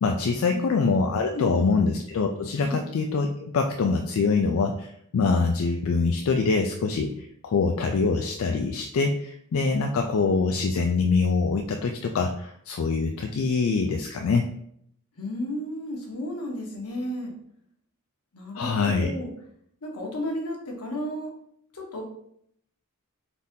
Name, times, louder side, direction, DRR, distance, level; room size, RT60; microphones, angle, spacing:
voice 1, 0.0-14.5 18.5-19.1, left 4 dB, 65° left, 3 dB, 0.3 m, -24 dB
voice 2, 1.3-1.7 2.6-2.8 15.2-17.3 18.3-19.3 19.8-21.3 21.7-22.0, left 1 dB, 90° left, 0 dB, 1.0 m, -33 dB
4.0 x 2.7 x 3.6 m, 0.70 s
head